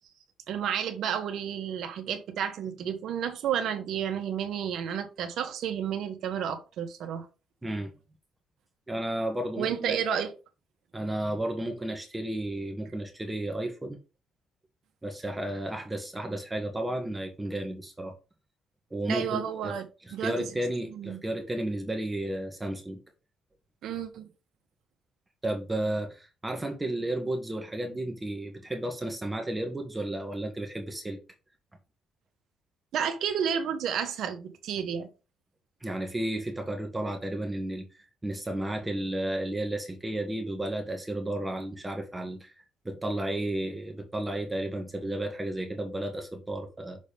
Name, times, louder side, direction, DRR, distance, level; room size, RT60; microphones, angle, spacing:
voice 1, 0.5-7.2 9.6-10.3 19.1-20.5 21.0-21.2 23.8-24.3 32.9-35.1, right 8 dB, 70° right, 1.5 m, -31 dB
voice 2, 7.6-7.9 8.9-10.0 10.9-14.0 15.0-18.1 18.9-19.7 20.1-23.0 25.4-31.2 35.8-37.8 38.2-42.5 42.8-47.0, right 1 dB, 10° right, 1.4 m, -33 dB
6.6 x 4.1 x 5.2 m
cardioid pair, 130°, 0 cm